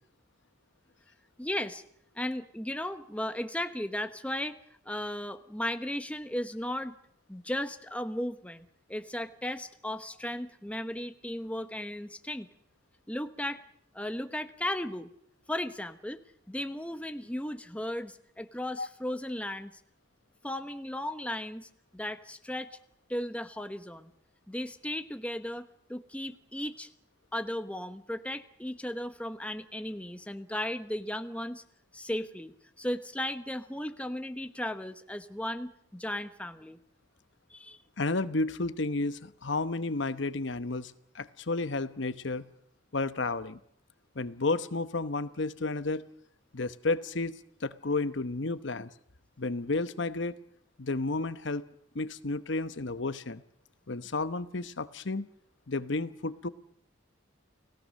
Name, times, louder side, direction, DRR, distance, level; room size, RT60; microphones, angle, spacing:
voice 1, 1.4-1.8 2.1-4.6 4.8-7.0 7.3-12.5 13.1-13.6 13.9-15.1 15.5-16.2 16.5-19.7 20.4-22.8 23.1-24.1 24.5-26.9 27.3-31.6 31.9-36.8 37.5-37.8, left 1 dB, 5° left, 9 dB, 1.0 m, -36 dB
voice 2, 38.0-42.4 42.9-43.6 44.1-46.0 46.5-48.9 49.4-50.4 50.8-51.6 51.9-53.4 53.9-55.3 55.7-56.5, left 3 dB, 65° left, 13 dB, 1.0 m, -32 dB
30.0 x 18.5 x 6.5 m, 0.69 s
head